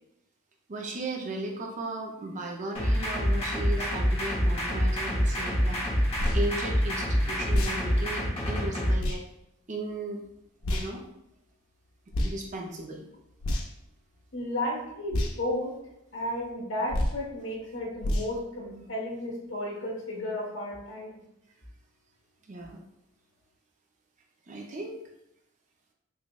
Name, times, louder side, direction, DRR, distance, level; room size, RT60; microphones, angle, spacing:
voice 1, 0.7-6.1 6.3-9.2 9.7-10.2 10.7-11.0 12.2-13.1 22.5-22.8 24.5-25.0, right 2 dB, 35° right, 1 dB, 0.4 m, -36 dB
sound 1, 2.7-8.9, equal, 25° left, 0.8 m, -26 dB
sound 2, 6.1-6.4 7.5-7.8 9.0-9.2 10.6-10.9 12.1-12.4 13.4-13.8 15.1-15.3 16.9-17.2 18.0-18.3, left 1 dB, 80° left, 0.5 m, -28 dB
voice 2, 14.3-15.8 16.1-21.2, left 1 dB, 60° left, -2 dB, 1.1 m, -33 dB
6.0 x 2.1 x 2.3 m, 0.83 s
head